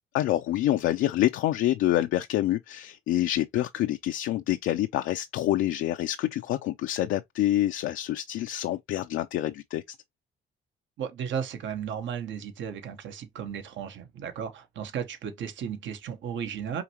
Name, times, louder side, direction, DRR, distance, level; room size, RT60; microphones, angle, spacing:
voice 1, 0.1-9.8, left 14 dB, 80° left, 0.4 m, -27 dB
voice 2, 11.0-16.8, right 8 dB, 70° right, 1.1 m, -34 dB
5.0 x 3.2 x 2.8 m
cardioid pair, 90°, 20 cm